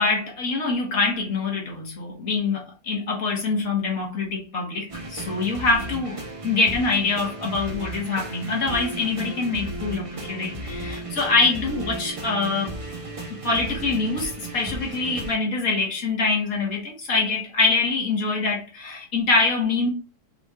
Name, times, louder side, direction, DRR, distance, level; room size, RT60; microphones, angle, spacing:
voice 1, 0.0-12.8 13.3-19.9, left 3 dB, 55° left, 1.9 m, -24 dB
sound 1, 4.9-15.4, right 1 dB, 35° right, 0.5 m, -35 dB
6.0 x 3.5 x 2.5 m
omnidirectional pair, 1.8 m